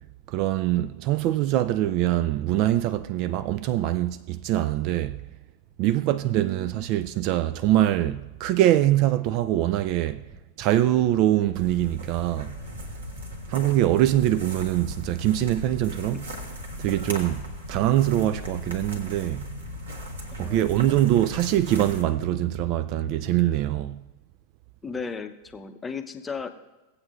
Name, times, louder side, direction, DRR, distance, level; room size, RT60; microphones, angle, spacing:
voice 1, 0.3-5.3 5.8-10.2 10.6-12.5 13.5-16.3 16.8-19.5 20.4-24.0, right 13 dB, 40° right, 0.3 m, -23 dB
voice 2, 6.1-6.7 16.1-16.2 20.4-20.7 24.8-26.5, left 5 dB, 15° left, 0.7 m, -36 dB
sound 1, 10.2-15.5, right 10 dB, 25° right, 0.7 m, -45 dB
sound 2, 11.5-22.0, equal, 70° right, 1.5 m, -38 dB
sound 3, 12.5-23.6, left 1 dB, 70° left, 0.6 m, -43 dB
17.5 x 8.1 x 2.4 m
figure-of-eight pair, 90°, 0 cm